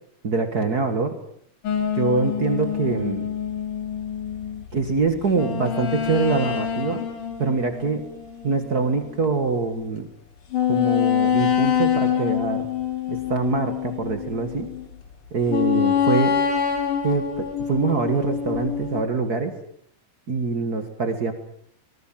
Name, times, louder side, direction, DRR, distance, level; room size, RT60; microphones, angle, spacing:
voice 1, 0.2-1.1 1.9-3.3 4.7-7.1 7.4-8.0 8.4-10.1 10.7-12.7 13.1-14.7 15.3-16.4 17.0-19.5 20.3-21.3, right 4 dB, 75° right, 7 dB, 0.8 m, -24 dB
sound 1, 1.6-9.4 9.8-9.9 10.5-14.9 15.5-19.0, left 8 dB, 55° left, 4.0 m, -25 dB
25.5 x 19.5 x 7.6 m, 0.69 s
omnidirectional pair, 4.7 m